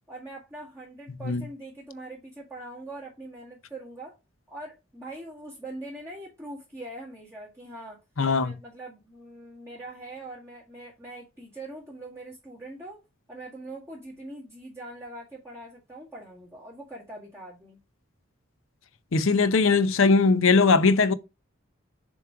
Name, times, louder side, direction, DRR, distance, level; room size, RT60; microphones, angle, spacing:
voice 1, 0.1-4.1 4.5-8.0 8.4-13.0 13.3-17.8, right 2 dB, 15° right, 1.8 m, -42 dB
voice 2, 8.2-8.6 19.1-21.1, left 4 dB, 70° left, 0.7 m, -20 dB
7.3 x 3.1 x 4.7 m
head